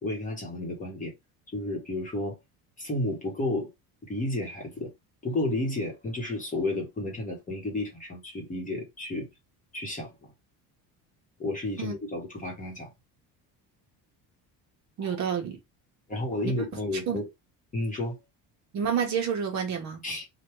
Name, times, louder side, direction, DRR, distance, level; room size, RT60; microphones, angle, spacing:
voice 1, 0.0-1.1 1.5-2.4 2.8-3.7 4.0-4.9 5.2-9.3 9.7-10.3 11.4-12.9 15.0-15.1 16.1-17.3 17.7-18.2 20.0-20.3, left 2 dB, 20° left, 1.0 m, -32 dB
voice 2, 15.0-15.6 16.4-16.5 17.1-17.2 18.7-20.0, right 7 dB, 45° right, 0.9 m, -29 dB
3.4 x 2.2 x 3.0 m
cardioid pair, 165°, 38 cm